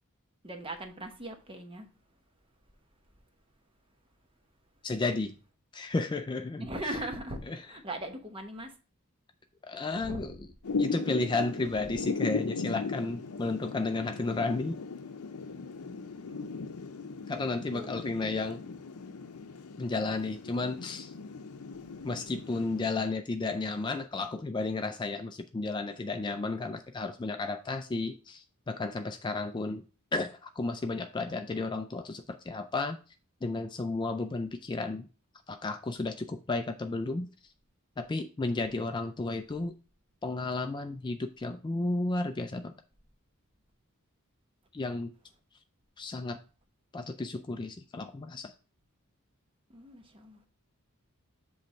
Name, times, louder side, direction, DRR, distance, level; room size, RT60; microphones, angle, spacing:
voice 1, 0.4-2.2 6.6-8.8 10.0-10.5 11.9-12.0 16.2-16.6 17.7-18.1 38.7-38.9 49.7-50.5, right 1 dB, 25° right, 0.9 m, -40 dB
voice 2, 4.8-5.3 5.7-6.6 9.6-10.3 10.8-14.8 17.3-18.6 19.8-21.1 22.0-29.8 30.1-33.0 33.4-35.1 35.5-37.3 38.0-39.7 40.2-42.7 44.7-45.1 46.0-46.4 46.9-48.5, left 3 dB, 20° left, 0.3 m, -33 dB
Thunder / Rain, 10.6-22.9, left 4 dB, 85° left, 0.6 m, -37 dB
7.8 x 3.2 x 4.3 m
head